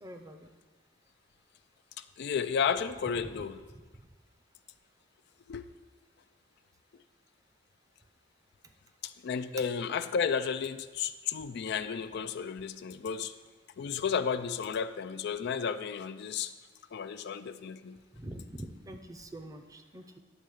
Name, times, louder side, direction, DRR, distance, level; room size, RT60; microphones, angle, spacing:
voice 1, 0.0-0.5 18.1-20.2, right 1 dB, 20° right, 6 dB, 0.6 m, -45 dB
voice 2, 2.0-3.6 5.5-5.7 9.0-13.3 13.8-16.5 16.9-18.0, left 6 dB, 60° left, 11 dB, 0.4 m, -33 dB
10.5 x 3.8 x 6.4 m, 1.3 s
head